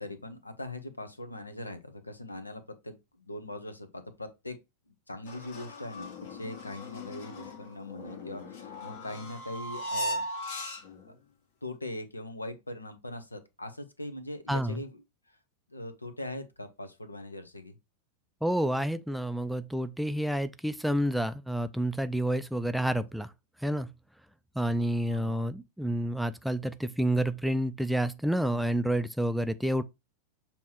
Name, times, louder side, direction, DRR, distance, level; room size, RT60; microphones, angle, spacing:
voice 1, 0.0-3.0 3.3-4.6 5.1-10.2 11.6-15.0 15.7-17.7 25.1-25.4, left 1 dB, 80° left, 0.9 m, -41 dB
sound 1, 5.3-11.1, equal, 55° left, 1.5 m, -38 dB
voice 2, 14.5-14.8 18.4-23.3 23.6-23.9 24.6-29.8, right 1 dB, ahead, 0.4 m, -29 dB
7.0 x 3.0 x 4.5 m
figure-of-eight pair, 90°, 0 cm